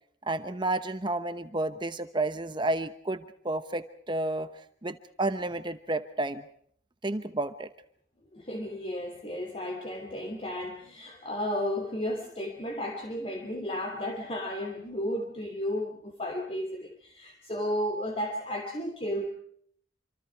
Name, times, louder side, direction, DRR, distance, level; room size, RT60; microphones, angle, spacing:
voice 1, 0.2-4.5 4.8-6.4 7.0-7.7, right 2 dB, 25° right, 10 dB, 1.0 m, -31 dB
voice 2, 8.3-19.3, left 1 dB, 30° left, 3 dB, 2.9 m, -33 dB
27.0 x 26.0 x 4.7 m, 0.63 s
head